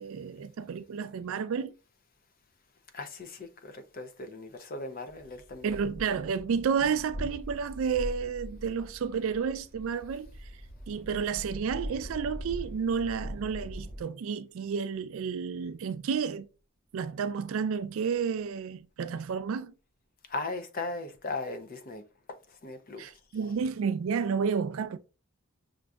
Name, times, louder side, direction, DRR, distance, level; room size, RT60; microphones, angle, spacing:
voice 1, 0.0-1.7 5.6-10.3 10.9-16.5 16.9-19.7 23.0-25.0, right 6 dB, 65° right, 0.3 m, -31 dB
voice 2, 2.9-5.8 20.3-22.0 22.5-23.1 23.4-23.5, left 3 dB, 40° left, 0.5 m, -38 dB
sound 1, 5.1-14.0, equal, 5° left, 1.7 m, -42 dB
6.1 x 2.5 x 2.3 m
head